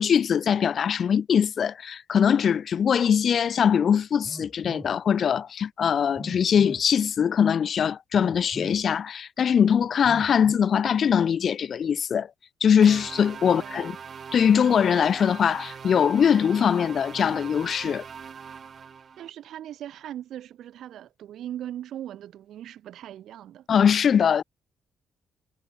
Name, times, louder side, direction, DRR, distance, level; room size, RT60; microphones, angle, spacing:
voice 1, 0.0-12.3 12.6-14.0 14.3-18.0 23.7-24.4, left 7 dB, 55° left, 0.4 m, -22 dB
Telephone, 4.2-5.0 6.2-6.9 8.1-8.8 10.0-10.5, right 1 dB, 10° right, 3.1 m, -41 dB
sound 1, 12.8-19.3, right 6 dB, 45° right, 3.6 m, -41 dB
voice 2, 13.5-13.9 19.2-23.7, right 11 dB, 75° right, 3.0 m, -39 dB
cardioid pair, 90°, 0 cm